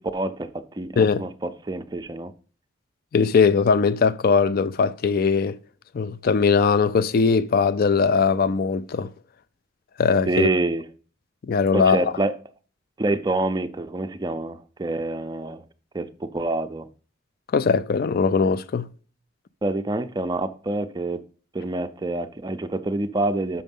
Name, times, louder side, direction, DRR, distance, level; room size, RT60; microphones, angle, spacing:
voice 1, 0.0-2.3 10.3-10.9 11.7-12.4 13.0-15.6 15.9-16.9 19.6-21.2 21.5-23.6, right 2 dB, 20° right, 0.5 m, -27 dB
voice 2, 1.0-1.3 3.1-5.6 5.9-9.1 10.0-10.5 11.5-12.0 17.5-18.9, left 5 dB, 50° left, 0.4 m, -20 dB
6.3 x 5.9 x 5.4 m
head